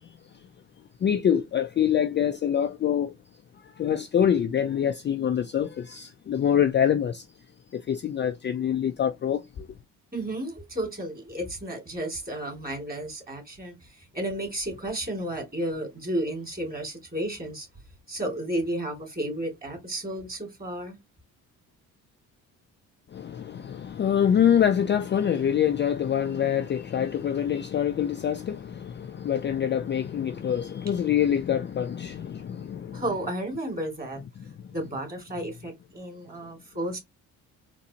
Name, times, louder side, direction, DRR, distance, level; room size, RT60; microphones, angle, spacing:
voice 1, 1.0-3.1 3.6-7.2 7.7-9.7 23.1-33.0, left 9 dB, 30° left, 0.4 m, -25 dB
voice 2, 10.1-17.7 18.1-21.0 32.9-34.2 34.7-37.0, right 1 dB, 25° right, 2.5 m, -32 dB
4.0 x 2.6 x 2.8 m
supercardioid pair, 80°, 37 cm